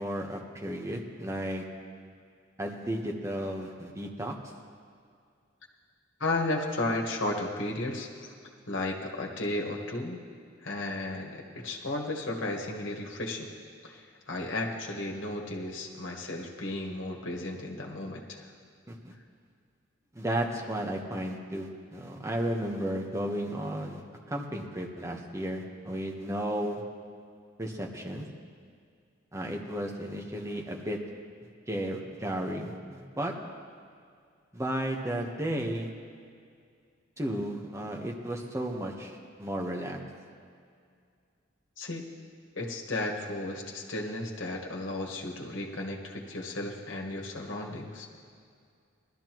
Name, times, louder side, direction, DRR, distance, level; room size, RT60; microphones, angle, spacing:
voice 1, 0.0-1.6 2.6-4.3 18.9-19.1 20.1-24.0 24.3-26.8 27.6-28.3 29.3-31.0 31.7-33.3 34.5-35.9 37.2-40.0, right 1 dB, 15° right, 0 dB, 1.1 m, -33 dB
voice 2, 6.2-8.3 8.7-10.2 10.6-13.5 13.8-18.5 41.8-42.1 42.5-48.1, left 2 dB, 65° left, 0 dB, 1.5 m, -34 dB
19.0 x 12.5 x 3.0 m, 2.2 s
head